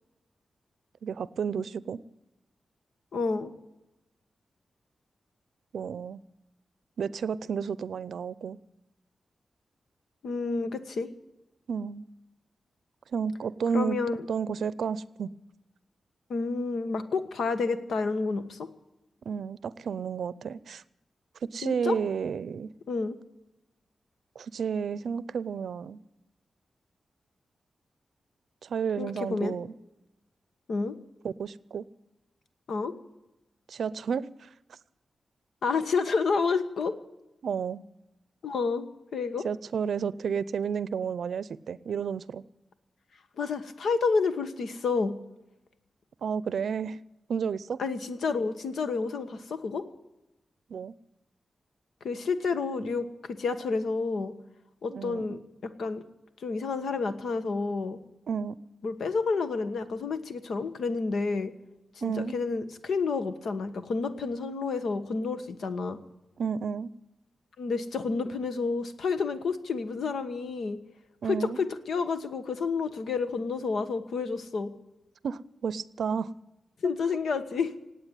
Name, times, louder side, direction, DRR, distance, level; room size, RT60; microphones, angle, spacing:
voice 1, 1.0-2.0 5.7-6.2 7.0-8.6 11.7-12.0 13.1-14.0 14.3-15.3 19.3-20.8 21.4-22.7 24.4-26.0 28.6-29.7 31.2-31.8 33.7-34.3 34.7-34.8 37.4-37.8 39.4-42.4 46.2-47.0 47.3-47.8 50.7-50.9 54.9-55.4 58.3-58.6 62.0-62.3 66.4-66.9 71.2-71.6 75.2-76.3, right 6 dB, 80° right, 18 dB, 0.5 m, -31 dB
voice 2, 3.1-3.5 10.2-11.1 13.7-14.2 16.3-18.7 21.6-22.0 22.9-23.2 29.0-29.6 30.7-30.9 32.7-32.9 35.6-36.9 38.4-39.5 43.4-45.1 47.8-49.8 52.0-54.3 54.8-56.0 56.4-58.0 58.8-61.5 61.9-66.0 67.6-70.8 71.2-74.7 76.8-77.7, left 4 dB, 80° left, 10 dB, 1.3 m, -30 dB
18.0 x 8.7 x 9.2 m, 0.95 s
wide cardioid pair, 165°, 0 cm